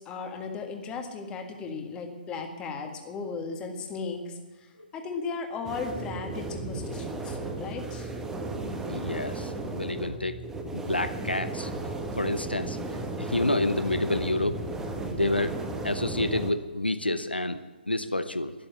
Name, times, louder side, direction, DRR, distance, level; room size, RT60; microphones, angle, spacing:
voice 1, 0.0-4.4 4.9-8.1, left 4 dB, 15° left, 4 dB, 1.7 m, -36 dB
sound 1, 5.7-16.5, right 2 dB, 10° right, 1.3 m, -35 dB
voice 2, 8.9-10.4 10.7-12.8 13.2-14.6 15.1-17.6 17.9-18.5, left 2 dB, 85° left, 11 dB, 0.9 m, -29 dB
12.5 x 11.0 x 8.0 m, 1.3 s
figure-of-eight pair, 130°, 5 cm